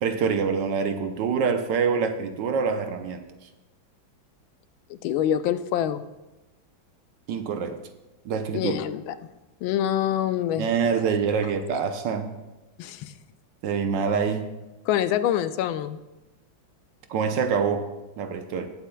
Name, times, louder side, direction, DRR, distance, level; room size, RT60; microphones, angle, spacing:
voice 1, 0.0-3.2 7.3-7.8 8.2-8.7 10.6-12.3 13.6-14.4 17.1-17.9 18.2-18.7, right 6 dB, 70° right, 7 dB, 1.4 m, -25 dB
voice 2, 4.9-6.0 8.5-9.1 9.6-10.7 12.8-13.1 14.9-16.0, left 10 dB, 85° left, 12 dB, 1.4 m, -25 dB
18.0 x 8.2 x 2.3 m, 1.1 s
omnidirectional pair, 2.1 m